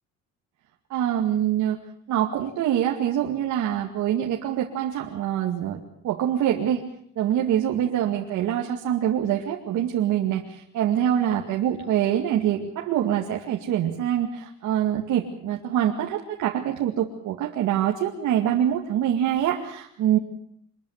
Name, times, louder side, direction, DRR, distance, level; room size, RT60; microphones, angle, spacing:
voice 1, 0.9-1.8 2.1-5.8 6.0-6.8 7.2-20.2, right 10 dB, 65° right, 0 dB, 2.3 m, -25 dB
25.0 x 21.5 x 6.6 m, 0.66 s
cardioid pair, 145°, 30 cm